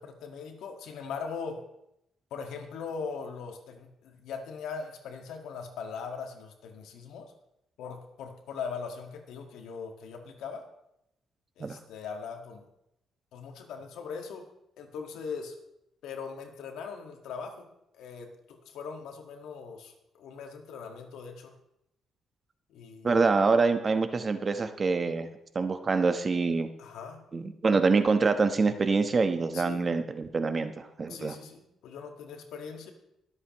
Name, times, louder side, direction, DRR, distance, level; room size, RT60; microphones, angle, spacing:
voice 1, 0.0-1.6 2.3-7.3 7.8-10.7 11.6-12.6 13.3-14.5 14.8-15.6 16.0-17.7 18.0-21.6 22.7-23.1 26.8-27.2 29.5-29.9 31.1-32.9, left 5 dB, 85° left, 4 dB, 1.8 m, -40 dB
voice 2, 23.0-25.3 25.5-26.7 27.3-31.4, right 4 dB, 35° right, 8 dB, 1.1 m, -25 dB
22.5 x 8.1 x 3.1 m, 0.82 s
cardioid pair, 90°, 0 cm